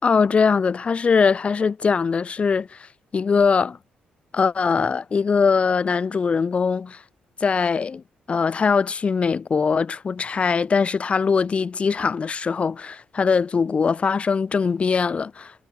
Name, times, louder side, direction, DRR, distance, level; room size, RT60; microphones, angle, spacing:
voice 1, 0.0-3.8 4.3-7.0 7.4-8.0 8.3-15.5, left 5 dB, 40° left, 7.2 m, -21 dB
cardioid pair, 95°, 3 cm